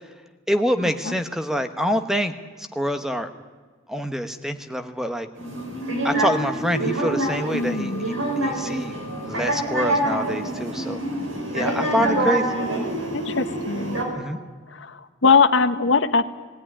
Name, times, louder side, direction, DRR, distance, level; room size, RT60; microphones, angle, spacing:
voice 1, 0.5-3.3 3.9-5.3 6.0-11.0 11.5-12.6 14.1-14.4, equal, ahead, 8 dB, 1.1 m, -26 dB
sound 1, 5.4-14.0, right 1 dB, 85° right, 5.0 m, -26 dB
voice 2, 7.5-8.1 11.8-12.3 13.1-14.0 14.7-16.2, left 4 dB, 70° left, 8 dB, 1.2 m, -21 dB
20.0 x 17.0 x 10.0 m, 1.4 s
head